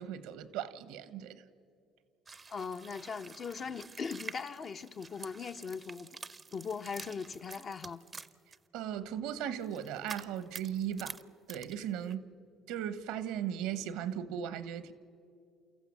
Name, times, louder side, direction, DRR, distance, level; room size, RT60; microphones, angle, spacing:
voice 1, 0.0-1.4 8.7-11.2 11.5-12.2 12.7-14.9, right 9 dB, 80° right, 1.0 m, -37 dB
sound 1, 2.3-8.6 9.6-11.2 11.5-12.1, right 4 dB, 25° right, 0.6 m, -48 dB
voice 2, 2.5-6.1 6.5-8.0, left 5 dB, 45° left, 0.9 m, -39 dB
29.5 x 14.5 x 7.3 m
supercardioid pair, 80°, 0 cm